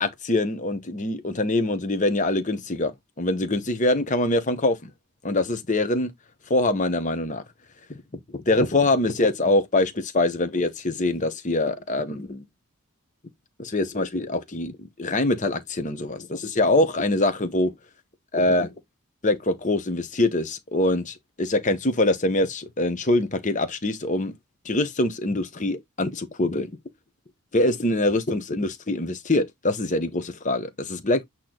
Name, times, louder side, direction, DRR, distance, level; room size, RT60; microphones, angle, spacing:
voice 1, 0.0-4.9 5.2-6.1 6.5-7.4 8.3-12.4 13.6-17.7 18.3-18.7 19.2-24.3 24.6-26.7 27.5-31.2, left 2 dB, 35° left, 1.0 m, -24 dB
8.3 x 3.0 x 3.8 m
head